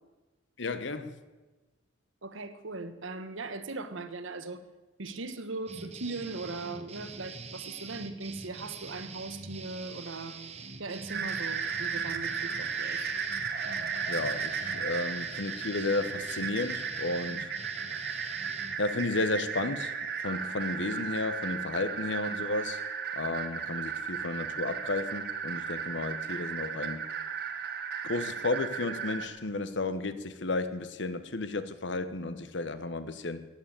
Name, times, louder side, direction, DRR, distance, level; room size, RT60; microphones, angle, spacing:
voice 1, 0.6-1.2 14.1-17.5 17.9-18.5 18.8-22.8 23.1-27.1 28.0-33.5, left 2 dB, 60° left, 1.0 m, -33 dB
voice 2, 2.2-4.6 5.0-10.5 10.8-13.1, right 3 dB, 70° right, 1.2 m, -39 dB
sound 1, 5.7-18.8, right 4 dB, 30° right, 1.1 m, -44 dB
sound 2, 11.1-29.3, right 6 dB, 50° right, 1.5 m, -35 dB
14.0 x 9.2 x 8.8 m
head